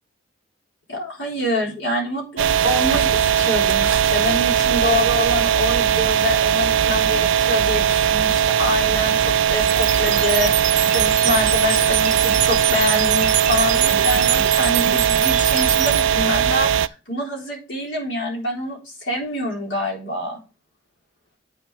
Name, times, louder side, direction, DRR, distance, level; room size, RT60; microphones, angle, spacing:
voice 1, 0.9-20.4, left 2 dB, 80° left, -1 dB, 3.9 m, -26 dB
sound 1, 2.4-16.9, right 8 dB, 85° right, 0.4 m, -19 dB
sound 2, 9.7-16.0, right 10 dB, 40° right, 1.2 m, -25 dB
8.9 x 6.3 x 4.8 m, 0.32 s
head